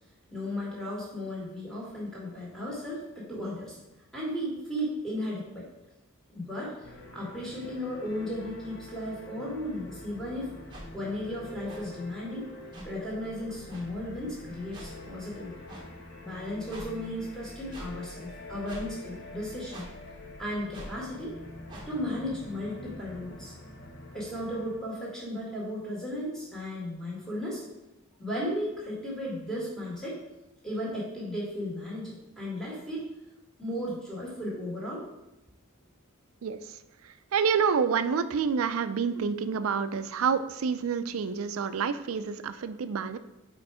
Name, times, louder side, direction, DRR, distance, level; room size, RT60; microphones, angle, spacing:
voice 1, 0.3-3.8 4.1-5.7 6.3-6.9 7.1-10.5 10.9-12.5 12.8-15.6 16.2-19.9 20.4-21.3 21.9-23.5 24.1-27.6 28.2-30.2 30.6-33.1 33.6-35.0, left 1 dB, 5° left, -6 dB, 1.9 m, -35 dB
sound 1, 6.8-24.8, left 1 dB, 55° left, 1.0 m, -45 dB
sound 2, 10.7-10.8 11.7-11.8 12.7-12.9 13.7-13.8 14.7-14.9 15.7-15.8 16.7-16.9 17.7-17.9 18.7-18.9 19.7-19.9 20.7-20.9 21.7-21.9, right 1 dB, 20° right, 1.2 m, -43 dB
voice 2, 36.4-36.8 37.0-43.2, right 6 dB, 80° right, 12 dB, 0.4 m, -28 dB
4.9 x 4.5 x 4.8 m, 0.92 s
head